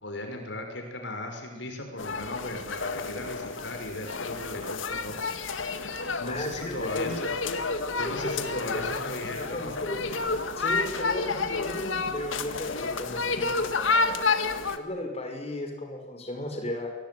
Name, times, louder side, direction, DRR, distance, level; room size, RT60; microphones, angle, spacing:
voice 1, 0.0-5.2 6.2-7.3 8.0-9.8, left 1 dB, 65° left, 4 dB, 5.9 m, -36 dB
sound 1, 2.0-14.8, left 4 dB, 85° left, 2.0 m, -30 dB
voice 2, 6.2-7.1 8.0-10.2 10.6-14.3 14.8-16.9, left 1 dB, 35° left, 4 dB, 5.7 m, -36 dB
27.5 x 23.0 x 9.5 m, 1.1 s
head